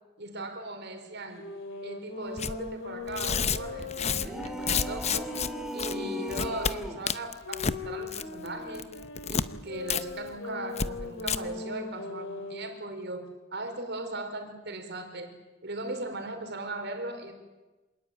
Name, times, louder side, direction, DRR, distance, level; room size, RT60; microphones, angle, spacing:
voice 1, 0.2-1.5 1.8-5.3 5.7-8.9 9.3-15.3 15.6-17.3, right 2 dB, 55° right, 6 dB, 4.3 m, -38 dB
sound 1, 1.3-6.8 7.4-12.8, left 4 dB, 65° left, 3.3 m, -40 dB
Tearing, 2.4-2.6 3.1-5.5 5.8-6.0 6.3-6.7 7.1-7.8 8.1-8.5 8.8-9.5 9.9-10.0 10.3-10.4 10.8-10.9 11.2-11.4, left 6 dB, 35° left, 0.8 m, -29 dB
sound 2, 4.1-7.1, right 1 dB, ahead, 2.4 m, -37 dB
26.5 x 19.5 x 9.0 m, 1.1 s
head